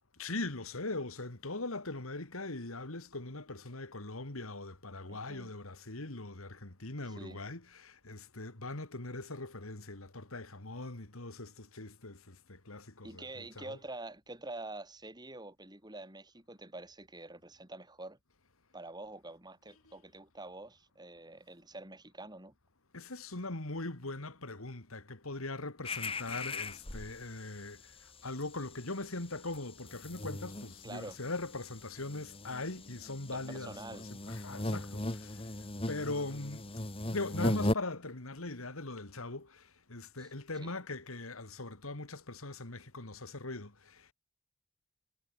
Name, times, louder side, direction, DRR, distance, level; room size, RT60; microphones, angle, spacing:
voice 1, 0.2-13.8 19.8-19.9 22.9-36.7 37.1-44.1, left 2 dB, 85° left, 2.7 m, -41 dB
voice 2, 5.1-5.5 7.2-7.4 13.0-18.2 18.7-22.5 30.8-31.2 33.3-34.0 40.2-40.3 40.6-40.7, right 2 dB, 20° right, 5.6 m, -46 dB
sound 1, 25.8-27.4 27.8-28.0 28.3-37.7, left 1 dB, 25° left, 2.0 m, -38 dB
head